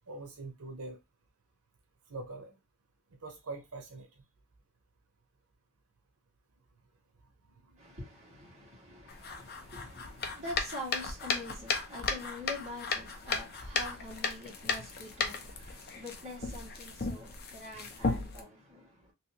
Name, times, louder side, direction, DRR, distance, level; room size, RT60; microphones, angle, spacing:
voice 1, 0.1-1.0 2.1-2.6 3.2-4.1 7.6-7.8, right 2 dB, 80° right, 0.7 m, -43 dB
voice 2, 7.8-18.9, left 1 dB, 30° right, 1.7 m, -45 dB
sound 1, 9.1-18.4, left 4 dB, 45° left, 0.6 m, -35 dB
3.2 x 2.7 x 2.8 m
head